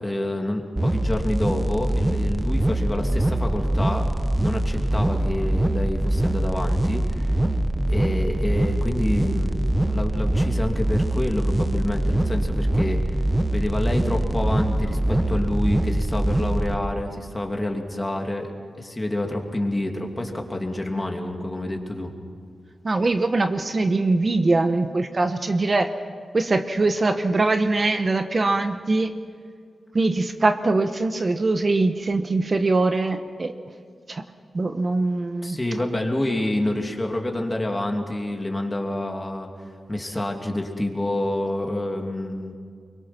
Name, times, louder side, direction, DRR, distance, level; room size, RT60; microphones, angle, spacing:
voice 1, 0.0-4.1 4.4-7.4 7.9-13.1 13.5-18.5 18.8-22.1 35.4-39.5 39.9-42.5, left 1 dB, 20° left, 2 dB, 2.7 m, -28 dB
sound 1, 0.8-16.8, right 1 dB, 15° right, 1.0 m, -23 dB
voice 2, 22.8-25.9 26.3-29.1 29.9-33.5 34.1-34.2 34.5-35.6, right 3 dB, 45° right, 7 dB, 1.0 m, -22 dB
24.0 x 22.0 x 6.0 m, 2.1 s
cardioid pair, 75°, 0 cm